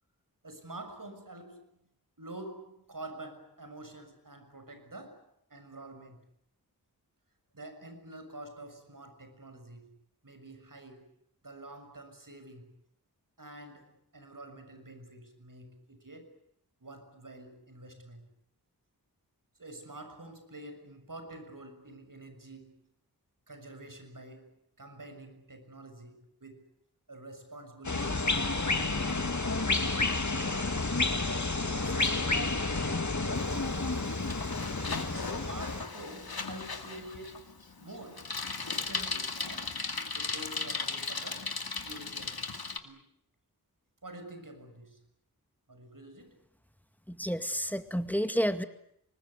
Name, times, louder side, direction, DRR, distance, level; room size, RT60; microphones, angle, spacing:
voice 1, 0.4-1.7 2.2-6.2 7.5-10.0 10.2-11.1 11.4-12.8 13.4-16.3 16.8-18.2 19.6-22.9 23.5-26.7 27.1-30.0 30.3-30.8 31.2-34.7 35.1-38.3 38.5-39.8 40.1-42.5 42.8-43.0 44.0-45.0 45.7-46.4, right 1 dB, 60° right, 7 dB, 6.7 m, -48 dB
sound 1, 27.8-35.9, left 3 dB, 50° left, 2.6 m, -30 dB
Bicycle, 33.3-42.8, left 4 dB, 75° left, 2.4 m, -37 dB
voice 2, 47.1-48.7, equal, 5° left, 9 dB, 2.1 m, -30 dB
25.5 x 20.5 x 9.6 m, 0.72 s
wide cardioid pair, 45°, 37 cm